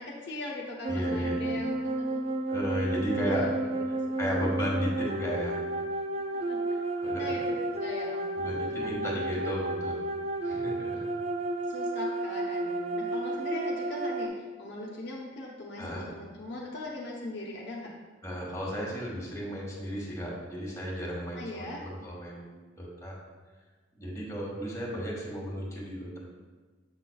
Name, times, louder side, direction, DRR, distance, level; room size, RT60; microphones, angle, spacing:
voice 1, 0.0-2.3 3.2-3.7 4.2-4.3 6.2-6.6 7.1-8.8 10.9-11.0 11.7-17.9 21.3-21.8, left 2 dB, 55° left, -3 dB, 0.8 m, -40 dB
sound 1, 0.8-14.3, right 2 dB, 30° right, 0.3 m, -32 dB
voice 2, 0.9-1.3 2.5-3.5 4.2-5.6 7.0-7.3 8.4-10.0 10.4-11.0 15.8-16.1 18.2-22.4 22.8-23.2 24.0-26.2, equal, 15° left, -4 dB, 1.3 m, -34 dB
7.2 x 5.7 x 2.3 m, 1.3 s
head